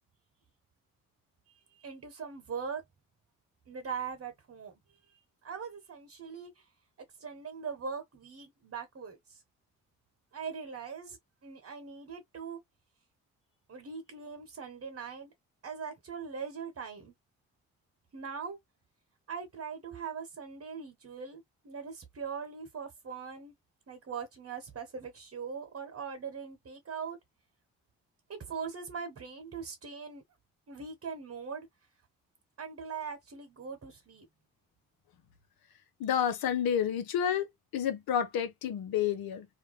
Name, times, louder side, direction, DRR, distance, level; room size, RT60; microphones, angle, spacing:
voice 1, 1.7-2.8 3.7-4.7 5.4-6.6 7.2-9.4 10.3-11.2 11.4-12.6 13.7-15.3 15.6-17.1 18.1-18.6 19.3-23.5 23.9-27.2 28.3-30.2 30.7-31.7 32.6-34.3, right 6 dB, 35° right, 1.0 m, -41 dB
voice 2, 36.0-39.5, left 9 dB, 65° left, 0.8 m, -30 dB
2.5 x 2.2 x 3.0 m
hypercardioid pair, 40°, 39 cm